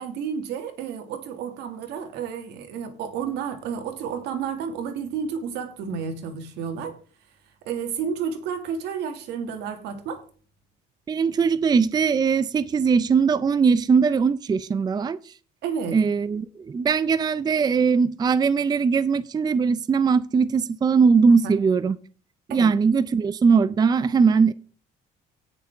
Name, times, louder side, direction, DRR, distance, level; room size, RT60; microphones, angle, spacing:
voice 1, 0.0-7.0 7.6-10.2 15.6-16.0 21.4-21.5 22.5-22.7, right 7 dB, 85° right, 2.2 m, -31 dB
voice 2, 11.1-15.2 15.9-22.0 22.5-24.5, right 5 dB, 25° right, 0.5 m, -20 dB
17.5 x 6.5 x 3.5 m
cardioid pair, 110°, 17 cm